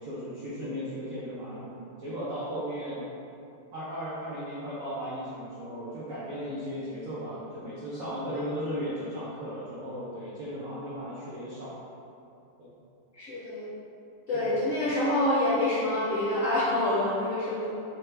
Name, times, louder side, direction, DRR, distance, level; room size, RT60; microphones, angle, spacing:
voice 1, 0.0-3.0 3.7-11.8 12.6-12.7 14.3-14.6, equal, 65° right, -10 dB, 0.8 m, -36 dB
voice 2, 13.1-13.7 14.3-17.7, left 1 dB, 75° left, -8 dB, 0.7 m, -27 dB
5.4 x 3.0 x 3.3 m, 2.7 s
omnidirectional pair, 2.3 m